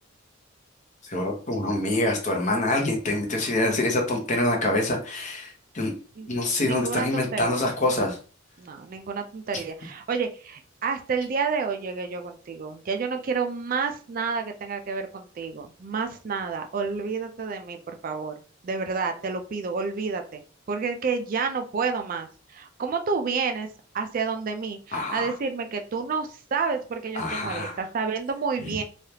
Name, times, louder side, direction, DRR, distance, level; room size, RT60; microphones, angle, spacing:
voice 1, 1.0-5.9 6.3-8.2 24.9-25.3 27.1-27.8 28.6-28.7, left 1 dB, 35° left, 1 dB, 0.8 m, -26 dB
voice 2, 6.6-7.7 8.6-18.3 18.6-20.4 20.7-23.7 23.9-28.8, right 5 dB, 45° right, 5 dB, 0.3 m, -29 dB
3.2 x 2.3 x 2.8 m, 0.39 s
head